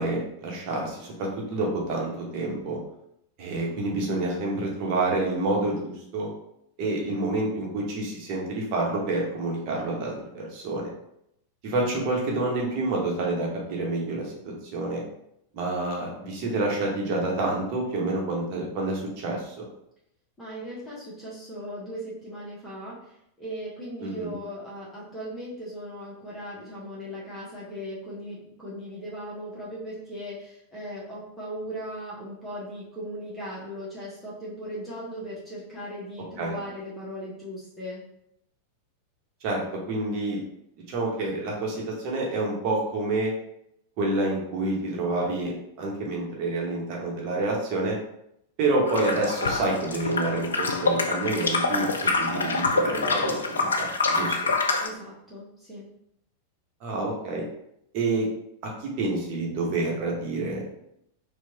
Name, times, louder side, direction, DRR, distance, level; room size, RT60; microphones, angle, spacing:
voice 1, 0.0-2.8 3.4-6.3 6.8-10.9 11.6-14.3 14.7-15.0 15.5-19.5 24.0-24.3 36.4-36.5 39.4-40.4 40.9-43.3 44.0-48.0 48.6-51.9 52.2-54.5 56.8-57.4 57.9-58.3 58.8-60.6, right 2 dB, 40° right, -2 dB, 1.2 m, -28 dB
voice 2, 20.4-23.1 23.4-38.0 54.8-55.9, equal, 10° left, -8 dB, 1.4 m, -38 dB
sound 1, 48.9-54.9, left 3 dB, 70° left, 0.4 m, -26 dB
4.5 x 2.4 x 2.9 m, 0.77 s
figure-of-eight pair, 90°, 0 cm